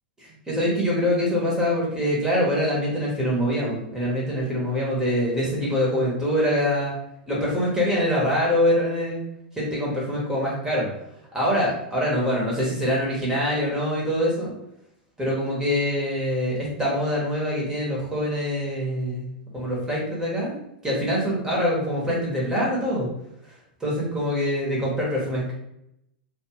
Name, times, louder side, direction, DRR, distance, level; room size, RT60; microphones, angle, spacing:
voice 1, 0.2-6.9 7.3-9.2 9.6-10.9 11.3-14.5 15.2-19.3 19.5-23.1 23.8-25.5, equal, 10° right, -5 dB, 1.1 m, -24 dB
2.4 x 2.4 x 3.0 m, 0.79 s
hypercardioid pair, 100°, 5 cm